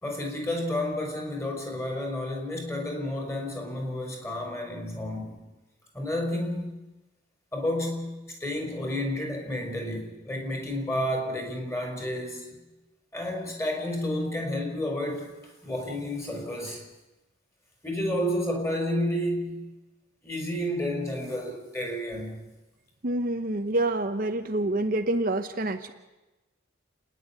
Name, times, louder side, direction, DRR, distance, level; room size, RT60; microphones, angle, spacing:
voice 1, 0.0-5.4 5.9-6.7 7.5-12.6 13.1-16.8 17.8-19.6 20.2-22.5, left 1 dB, 15° left, 1 dB, 4.6 m, -31 dB
voice 2, 23.0-25.9, right 2 dB, 45° right, 6 dB, 0.8 m, -27 dB
30.0 x 10.0 x 9.9 m, 1.1 s
head